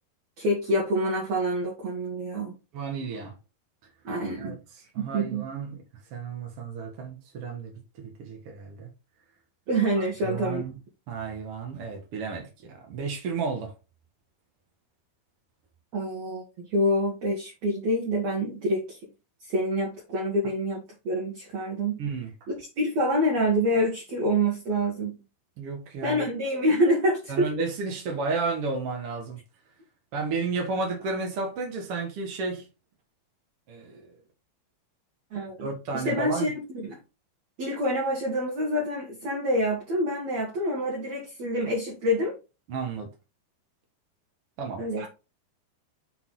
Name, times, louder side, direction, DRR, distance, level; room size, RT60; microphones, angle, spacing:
voice 1, 0.4-2.6 4.0-4.6 5.0-5.5 9.7-10.6 15.9-19.0 19.4-22.0 22.5-25.2 26.0-27.7 35.3-37.0 37.6-42.3 44.8-45.1, equal, 55° right, 2.1 m, -27 dB
voice 2, 2.7-3.3 4.4-4.5 4.9-5.8 6.1-8.9 10.0-10.8 11.1-13.7 22.0-22.3 25.6-26.2 27.3-29.4 30.1-32.7 33.7-34.1 35.6-36.5 42.7-43.1 44.6-45.1, right 4 dB, 90° right, 1.2 m, -32 dB
6.9 x 4.1 x 3.8 m
omnidirectional pair, 4.9 m